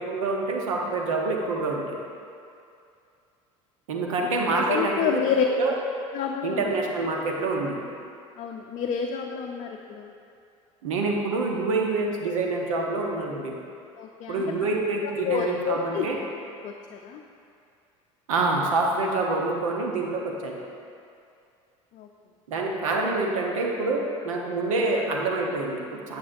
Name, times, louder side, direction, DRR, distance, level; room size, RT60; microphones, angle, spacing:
voice 1, 0.0-2.0 3.9-5.2 5.6-5.8 6.4-7.8 10.8-13.5 14.3-16.2 18.3-20.6 22.5-26.2, right 3 dB, 75° right, 0 dB, 1.0 m, -26 dB
voice 2, 4.5-5.4 6.1-6.7 8.4-10.1 14.0-14.4 15.0-16.1 16.6-17.2 21.9-22.1, left 7 dB, 45° left, 1 dB, 0.6 m, -29 dB
8.4 x 7.8 x 2.6 m, 2.5 s
hypercardioid pair, 75°, 17 cm